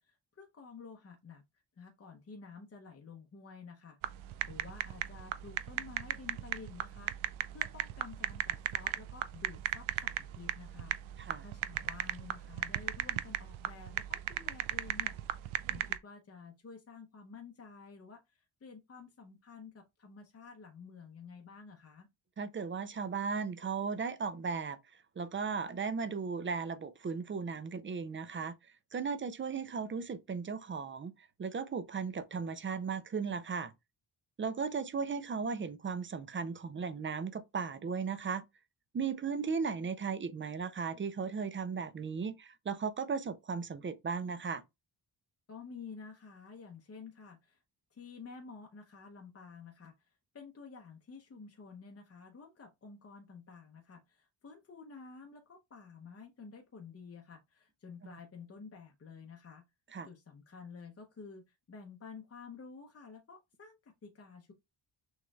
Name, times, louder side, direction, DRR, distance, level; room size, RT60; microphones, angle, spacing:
voice 1, 0.0-1.4 1.8-22.1 45.5-47.6 47.9-59.6 60.0-64.5, left 5 dB, 30° left, 0.7 m, -51 dB
sound 1, 4.0-16.0, right 13 dB, 85° right, 0.5 m, -36 dB
voice 2, 22.4-24.8 25.2-28.6 28.9-31.1 31.4-33.7 34.4-38.4 38.9-44.6 59.9-60.1, right 5 dB, 30° right, 0.4 m, -36 dB
6.3 x 3.1 x 2.2 m
wide cardioid pair, 135°, 46 cm